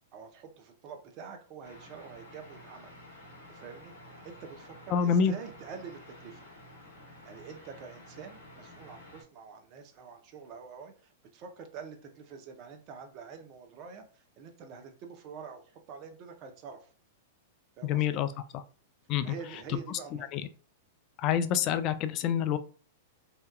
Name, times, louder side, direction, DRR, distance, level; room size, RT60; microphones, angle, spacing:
voice 1, 0.1-2.9 3.5-6.5 7.2-16.9 17.8-18.2 19.2-20.3, right 6 dB, 45° right, 5 dB, 0.6 m, -46 dB
sound 1, 1.6-9.2, left 1 dB, 70° left, 0.8 m, -51 dB
voice 2, 4.9-5.3 17.8-18.3 18.5-18.6 19.1-19.3 20.3-20.4 21.2-22.6, left 8 dB, 40° left, 11 dB, 0.3 m, -27 dB
2.8 x 2.2 x 2.2 m, 0.41 s
hypercardioid pair, 115°, 0 cm